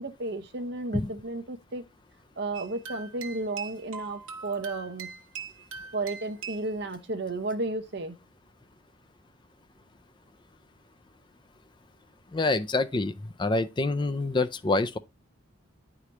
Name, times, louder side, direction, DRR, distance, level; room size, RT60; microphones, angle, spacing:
voice 1, 0.0-1.8 2.4-5.1 5.9-8.1, right 2 dB, 55° right, 0.7 m, -33 dB
sound 1, 2.5-6.8, right 6 dB, 80° right, 0.9 m, -41 dB
voice 2, 12.3-13.1 13.4-15.0, left 2 dB, 20° left, 0.4 m, -26 dB
9.5 x 4.9 x 2.9 m
head